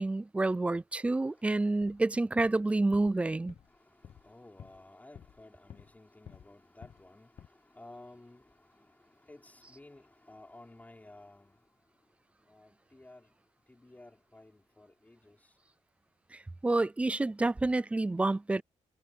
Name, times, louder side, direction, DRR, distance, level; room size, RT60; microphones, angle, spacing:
voice 1, 0.0-3.5 16.3-18.6, right 2 dB, 10° right, 0.3 m, -29 dB
voice 2, 1.0-1.7 3.6-11.8 12.4-13.3 13.7-15.6, left 2 dB, 10° left, 5.3 m, -55 dB
sound 1, 1.7-2.1 2.4-2.6 2.9-3.2 3.5-3.8 4.0-4.3 4.6-4.8 5.1-6.0 6.2-6.5 6.8-7.1 7.4-7.5, left 8 dB, 50° left, 1.1 m, -52 dB
wide cardioid pair, 175°, 13 cm